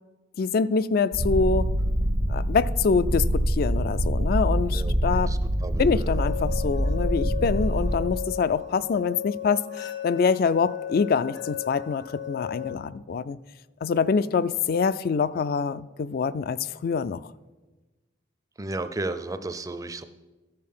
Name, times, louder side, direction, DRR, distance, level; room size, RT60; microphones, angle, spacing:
voice 1, 0.4-1.7 2.3-5.3 5.8-13.4 13.8-17.2, left 5 dB, 50° left, 15 dB, 0.3 m, -25 dB
Purr, 1.1-8.1, equal, 90° right, 1.2 m, -25 dB
voice 2, 4.7-6.2 18.6-20.0, right 2 dB, 20° right, 11 dB, 0.5 m, -34 dB
sound 1, 6.2-12.8, left 11 dB, 65° left, 0.9 m, -36 dB
13.5 x 6.7 x 5.5 m, 1.2 s
head